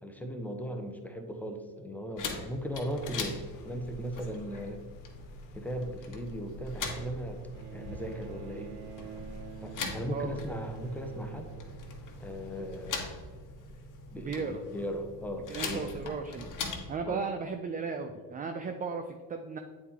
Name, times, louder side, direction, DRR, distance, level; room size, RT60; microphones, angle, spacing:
voice 1, 0.0-4.8 5.5-7.4 7.7-8.8 9.6-11.5 12.2-13.2 14.1-15.9 17.0-17.3, equal, 5° left, 4 dB, 0.8 m, -38 dB
sound 1, 2.2-17.0, left 4 dB, 40° left, 1.2 m, -42 dB
sound 2, 2.8-13.0, left 2 dB, 90° left, 1.1 m, -51 dB
Bowed string instrument, 7.5-13.0 14.1-14.2, right 8 dB, 90° right, 0.7 m, -47 dB
voice 2, 14.2-14.6 15.5-16.5 16.9-19.6, right 5 dB, 20° right, 6 dB, 0.3 m, -35 dB
8.2 x 4.3 x 3.6 m, 1.4 s
supercardioid pair, 85°, 46 cm